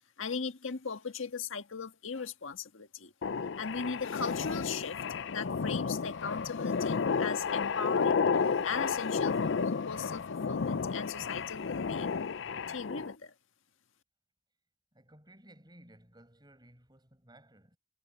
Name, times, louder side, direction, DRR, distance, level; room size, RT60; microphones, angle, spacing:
voice 1, 0.2-3.1 3.6-5.0 5.3-12.2 12.7-13.3, left 5 dB, 90° left, 1.6 m, -38 dB
sound 1, 3.2-13.1, left 5 dB, 65° left, 0.5 m, -32 dB
voice 2, 14.9-17.8, right 1 dB, 20° right, 5.7 m, -58 dB
head